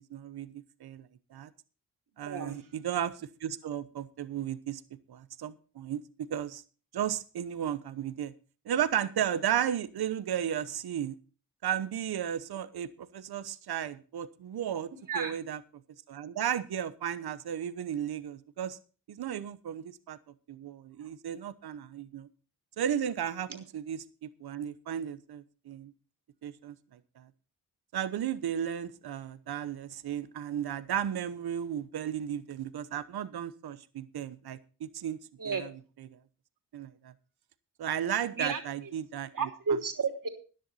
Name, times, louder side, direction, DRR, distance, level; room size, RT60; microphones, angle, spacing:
voice 1, 0.1-1.5 2.2-4.8 5.1-6.6 6.9-8.3 8.6-11.1 11.6-14.9 15.1-15.6 16.1-18.8 19.1-20.2 20.5-22.3 22.8-25.9 26.4-27.3 27.9-35.2 35.4-36.2 36.7-37.1 37.8-39.5, right 9 dB, 80° right, 13 dB, 1.0 m, -34 dB
voice 2, 2.2-2.6 15.1-15.3 35.4-35.6 38.4-38.6 39.3-40.3, right 5 dB, 55° right, 5 dB, 3.2 m, -31 dB
14.0 x 10.5 x 4.2 m, 0.37 s
cardioid pair, 45°, 38 cm